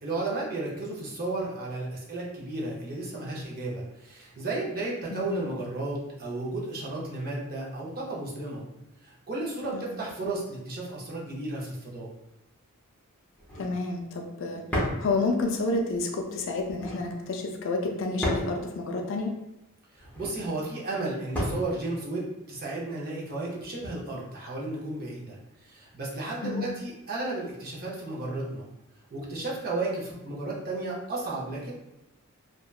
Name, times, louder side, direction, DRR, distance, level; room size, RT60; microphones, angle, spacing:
voice 1, 0.0-8.7 9.0-12.1 19.9-28.7 29.1-31.7, right 2 dB, 45° right, -4 dB, 0.7 m, -33 dB
voice 2, 5.1-5.4 9.7-10.0 13.6-14.6 15.0-19.4 26.4-26.7, left 3 dB, 60° left, 3 dB, 0.4 m, -30 dB
sound 1, 13.4-13.8 14.7-15.1 16.6-17.0 18.2-18.6 20.0-20.4 21.3-21.7, equal, 10° left, 0.6 m, -31 dB
2.8 x 2.2 x 2.3 m, 0.91 s
head